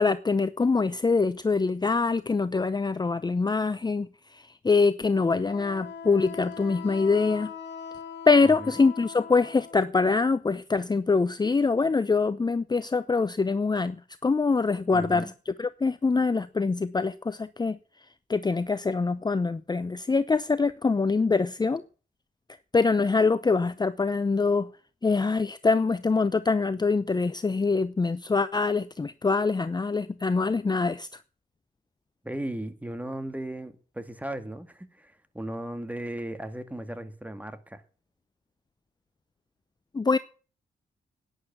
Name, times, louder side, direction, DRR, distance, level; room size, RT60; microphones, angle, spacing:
voice 1, 0.0-7.5 8.3-14.0 14.2-17.8 18.3-21.8 22.7-24.7 25.0-31.2 39.9-40.2, left 4 dB, 25° left, 0.7 m, -24 dB
Wind instrument woodwind instrument, 5.4-9.9, left 6 dB, 90° left, 2.0 m, -41 dB
voice 2, 8.5-8.8 14.9-15.3 32.2-37.8, right 1 dB, 10° right, 2.1 m, -36 dB
11.5 x 10.0 x 8.2 m
cardioid pair, 80°, 18 cm